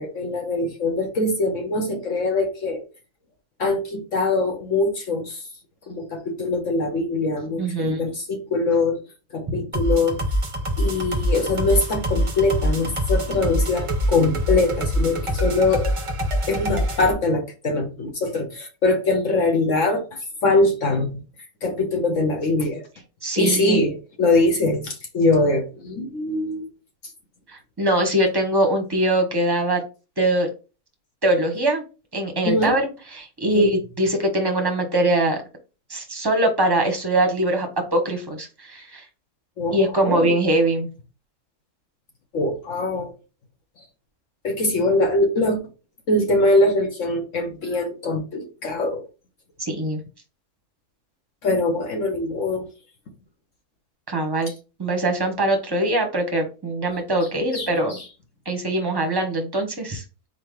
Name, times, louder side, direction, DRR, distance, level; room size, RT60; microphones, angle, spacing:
voice 1, 0.0-2.8 3.6-5.4 5.9-9.0 9.3-10.2 10.8-15.9 16.5-20.0 20.4-21.1 21.6-22.8 23.4-26.6 32.4-32.8 33.5-33.6 39.6-40.4 42.3-43.1 44.4-45.6 46.1-49.0 51.4-52.6 57.5-58.0, left 2 dB, 60° left, 3 dB, 1.2 m, -22 dB
voice 2, 7.6-8.0 23.2-23.8 27.5-29.8 30.2-30.5 31.2-31.8 32.1-32.8 33.1-35.4 35.9-39.0 39.7-40.9 49.6-50.0 54.1-54.5 54.8-58.0 58.5-60.0, right 1 dB, 20° right, 5 dB, 0.9 m, -22 dB
sound 1, 9.7-17.1, equal, 35° right, 0.5 m, -24 dB
4.4 x 3.8 x 3.2 m, 0.32 s
omnidirectional pair, 1.6 m